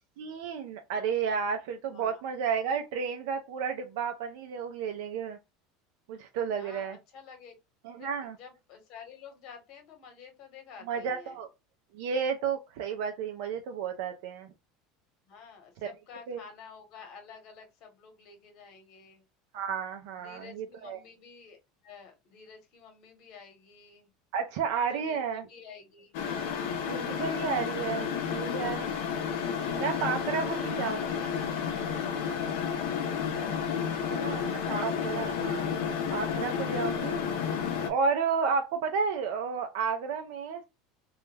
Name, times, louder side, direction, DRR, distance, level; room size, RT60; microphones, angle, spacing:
voice 1, 0.2-5.4 6.1-7.0 7.8-8.4 10.9-11.5 11.9-14.5 16.3-16.4 19.5-21.0 24.3-25.4 26.9-28.8 29.7-31.0 34.1-34.4 34.7-35.7 36.1-40.6, right 6 dB, 75° right, 0.4 m, -32 dB
voice 2, 1.9-2.2 6.6-7.5 8.0-11.4 15.3-19.2 20.2-21.6 21.8-24.1 24.9-26.2 26.4-26.8 28.7-29.1 30.1-31.0 34.0-34.4, left 6 dB, 50° left, 1.0 m, -50 dB
sound 1, 26.1-37.9, left 7 dB, 75° left, 0.6 m, -31 dB
2.3 x 2.1 x 3.1 m
supercardioid pair, 135°, 0 cm